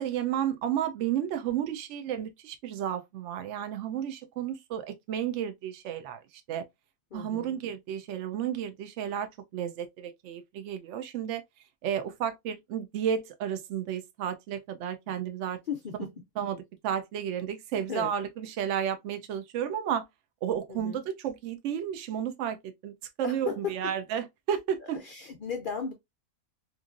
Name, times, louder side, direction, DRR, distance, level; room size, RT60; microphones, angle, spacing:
voice 1, 0.0-6.2 6.5-6.6 7.1-11.4 11.8-15.6 16.4-16.6 16.8-20.0 20.4-25.0, right 9 dB, 70° right, 0.8 m, -32 dB
voice 2, 7.1-7.6 15.7-16.1 17.9-18.1 20.7-21.0 23.2-23.8 24.9-25.9, left 7 dB, 65° left, 0.5 m, -36 dB
3.0 x 2.5 x 2.4 m
omnidirectional pair, 1.4 m